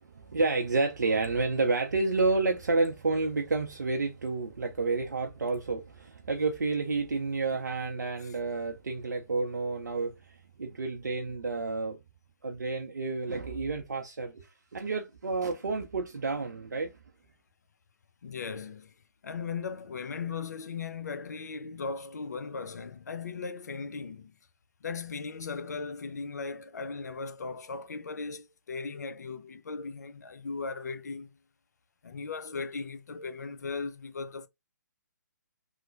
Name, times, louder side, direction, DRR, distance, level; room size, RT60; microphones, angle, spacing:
voice 1, 0.0-12.0 12.4-17.0, right 3 dB, 70° right, 0.6 m, -30 dB
voice 2, 18.2-18.9 19.2-24.3 24.8-31.3 32.0-34.5, left 4 dB, 60° left, 0.5 m, -37 dB
3.1 x 2.1 x 3.8 m
figure-of-eight pair, 135°, 10 cm